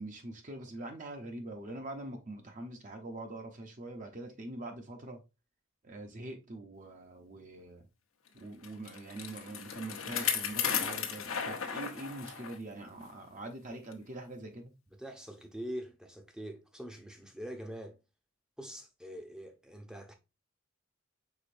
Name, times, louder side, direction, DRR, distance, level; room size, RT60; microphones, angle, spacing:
voice 1, 0.0-5.2 5.8-7.9 8.3-14.7, right 2 dB, 40° right, 0.7 m, -44 dB
Bicycle, 8.6-12.6 13.0-13.1 13.9-14.0, left 8 dB, 80° left, 0.8 m, -35 dB
voice 2, 14.9-18.0 18.6-20.1, equal, 5° right, 0.6 m, -44 dB
5.0 x 3.7 x 2.5 m
head